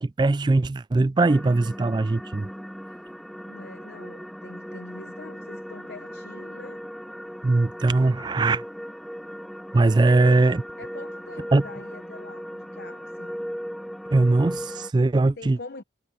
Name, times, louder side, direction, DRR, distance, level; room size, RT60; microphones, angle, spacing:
voice 1, 0.0-2.5 7.4-8.6 9.7-10.6 11.5-11.6 14.1-15.6, right 2 dB, 25° right, 0.3 m, -20 dB
sound 1, 1.2-14.9, equal, ahead, 0.8 m, -38 dB
voice 2, 3.4-6.8 10.0-10.5 10.8-13.4 15.4-15.8, left 3 dB, 60° left, 0.8 m, -43 dB
head